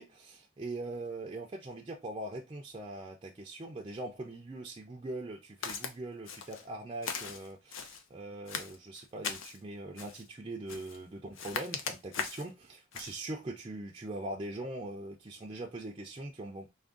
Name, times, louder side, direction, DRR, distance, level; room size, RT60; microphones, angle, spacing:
voice 1, 0.0-16.7, right 2 dB, 25° right, 0.4 m, -42 dB
Walk footsteps, 5.6-5.9 6.3-6.7 7.0-8.0 8.5-9.6 10.0-10.3 10.7-11.0 11.3-12.5 12.9-13.2, left 6 dB, 85° left, 0.6 m, -39 dB
3.4 x 2.2 x 3.6 m
head